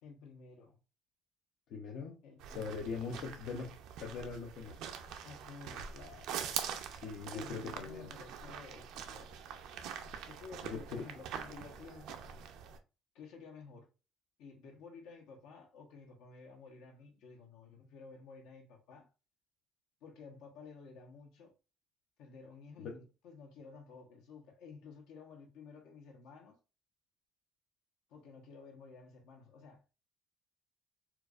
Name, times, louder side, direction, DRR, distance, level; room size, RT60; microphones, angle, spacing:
voice 1, 0.0-0.8 2.2-3.2 5.2-6.6 7.3-9.3 10.1-12.2 13.1-13.9 14.4-19.1 20.0-21.5 22.2-26.6 28.1-29.8, left 4 dB, 80° left, 1.0 m, -53 dB
voice 2, 1.7-2.2 2.5-4.8 6.9-8.1 10.1-10.2 10.7-11.1 22.8-23.0, left 5 dB, 65° left, 0.6 m, -42 dB
sound 1, 2.4-12.8, right 8 dB, 75° right, 0.5 m, -44 dB
4.4 x 2.4 x 2.4 m
cardioid pair, 160°, 0 cm